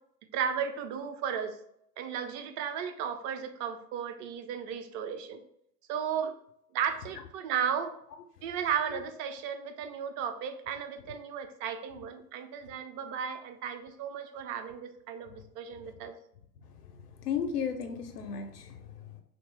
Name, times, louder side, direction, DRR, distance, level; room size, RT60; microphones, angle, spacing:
voice 1, 0.3-1.6 2.0-5.4 5.9-6.3 6.7-7.9 8.4-16.2, right 7 dB, 40° right, 8 dB, 0.5 m, -34 dB
voice 2, 16.9-19.2, left 7 dB, 80° left, 5 dB, 0.6 m, -35 dB
2.9 x 2.8 x 3.3 m, 0.71 s
figure-of-eight pair, 75°, 46 cm